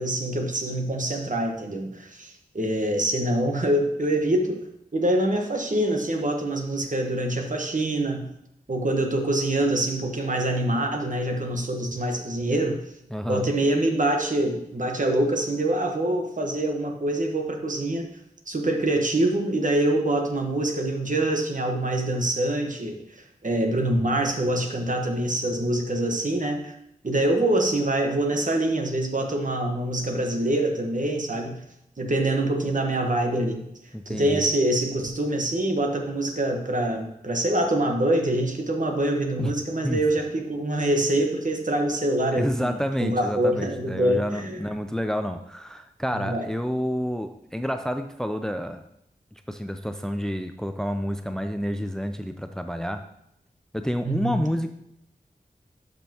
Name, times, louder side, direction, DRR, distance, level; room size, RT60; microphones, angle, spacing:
voice 1, 0.0-4.7 4.9-8.3 8.7-12.8 13.3-18.1 18.5-26.7 27.0-31.6 32.0-33.6 34.1-44.6 46.1-46.4 54.0-54.4, right 1 dB, 55° right, 3 dB, 1.3 m, -25 dB
voice 2, 13.1-13.4 33.9-34.4 39.4-39.5 39.8-40.0 42.3-48.8 49.5-53.0 53.7-54.7, equal, 5° left, 7 dB, 0.5 m, -29 dB
11.5 x 5.3 x 2.9 m, 0.78 s
wide cardioid pair, 50°, 16 cm